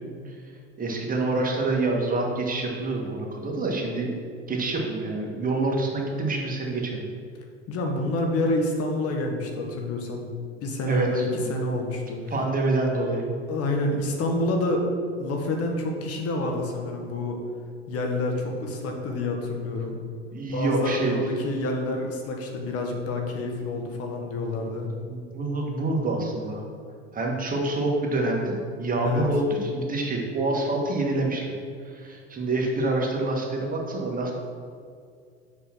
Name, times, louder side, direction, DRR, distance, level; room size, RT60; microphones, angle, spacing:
voice 1, 0.8-4.1 4.5-7.1 10.8-11.5 12.3-13.2 20.3-21.2 25.1-26.6 27.1-31.5 31.8-34.3, right 2 dB, 25° right, 0 dB, 1.6 m, -26 dB
voice 2, 7.7-10.3 10.6-12.2 13.5-14.9 15.2-17.4 17.9-20.0 20.5-24.9 29.0-29.2, left 2 dB, 45° left, 2 dB, 1.4 m, -28 dB
5.9 x 5.4 x 6.2 m, 2.3 s
hypercardioid pair, 80°, 33 cm